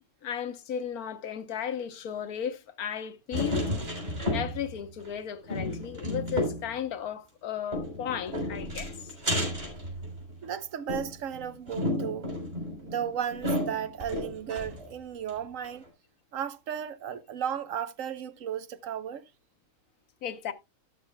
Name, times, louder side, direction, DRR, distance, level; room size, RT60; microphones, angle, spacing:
voice 1, 0.2-3.6 4.3-8.9 20.2-20.5, left 8 dB, 85° left, 1.4 m, -35 dB
sound 1, 3.3-4.8 5.0-5.1 5.5-6.7 7.7-10.4 10.9-14.9 15.3-15.4 15.6-15.7, left 1 dB, 40° right, 3.8 m, -32 dB
voice 2, 10.4-12.3 12.8-15.8 16.3-19.3, right 9 dB, 65° right, 1.1 m, -34 dB
12.5 x 8.5 x 2.2 m
omnidirectional pair, 1.5 m